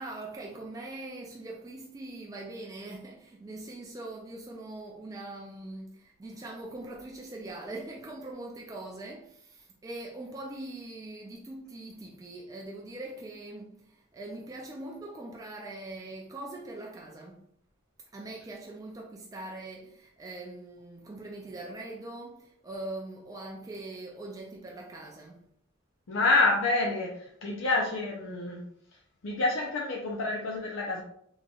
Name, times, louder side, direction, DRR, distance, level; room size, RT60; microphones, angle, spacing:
voice 1, 0.0-17.4 18.1-25.4, right 2 dB, 20° right, 0.3 m, -42 dB
voice 2, 26.1-28.6 29.2-31.0, left 3 dB, 75° left, 0.5 m, -27 dB
4.0 x 3.0 x 2.3 m
head